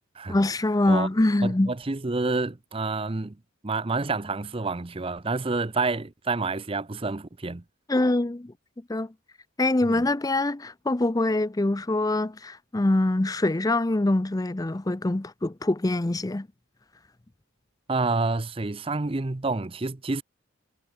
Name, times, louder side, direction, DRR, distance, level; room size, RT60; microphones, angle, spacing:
voice 1, 0.3-1.7 7.9-8.5 8.9-9.1 9.6-16.5, left 2 dB, 15° left, 0.5 m, -24 dB
voice 2, 1.4-3.4 3.6-7.6 9.8-10.0 17.9-20.2, right 3 dB, 25° right, 0.6 m, -28 dB
head